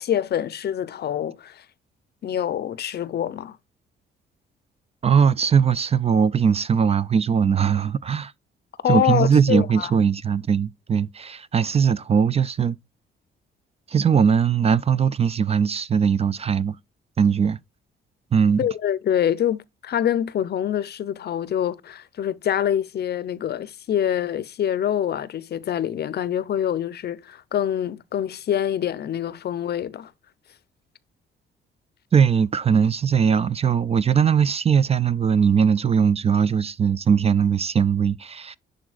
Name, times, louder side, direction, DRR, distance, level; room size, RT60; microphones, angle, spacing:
voice 1, 0.0-1.6 2.2-3.6 8.8-9.9 18.6-30.1, left 10 dB, 55° left, 0.6 m, -25 dB
voice 2, 5.0-8.3 8.9-12.8 13.9-16.8 17.2-17.6 18.3-18.6 32.1-38.6, right 7 dB, 30° right, 0.4 m, -20 dB
11.0 x 3.8 x 2.4 m
cardioid pair, 90°, 20 cm